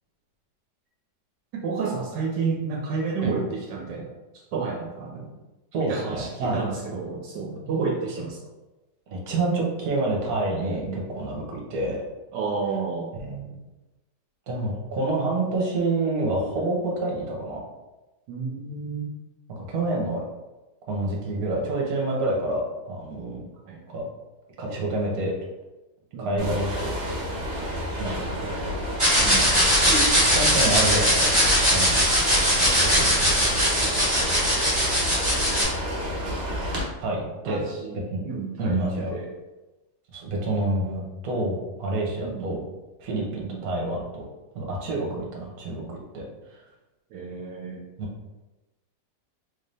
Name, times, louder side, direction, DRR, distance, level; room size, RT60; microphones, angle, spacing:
voice 1, 1.5-4.1 4.5-5.3 5.8-8.4 10.8-11.0 12.3-13.1 18.3-19.1 23.7-23.8 26.1-26.6 29.2-29.6 37.5-38.8 39.1-39.3 42.2-42.6 43.3-43.7 47.1-47.8, right 4 dB, 85° right, 0 dB, 1.3 m, -31 dB
voice 2, 5.7-6.8 9.1-12.0 13.1-13.6 14.5-17.6 19.5-20.2 20.9-23.5 23.9-24.1 24.6-25.3 26.2-27.0 27.9-28.5 30.3-31.3 31.7-32.1 32.8-33.1 37.0-37.6 38.1-38.2 38.6-39.1 40.1-42.6 43.0-44.3 44.5-46.2, right 2 dB, 60° right, -2 dB, 1.3 m, -28 dB
sound 1, 26.4-36.8, equal, 45° right, 0.9 m, -30 dB
sound 2, 29.0-35.6, equal, 10° right, 1.3 m, -20 dB
3.9 x 2.7 x 3.3 m, 1.1 s
omnidirectional pair, 1.9 m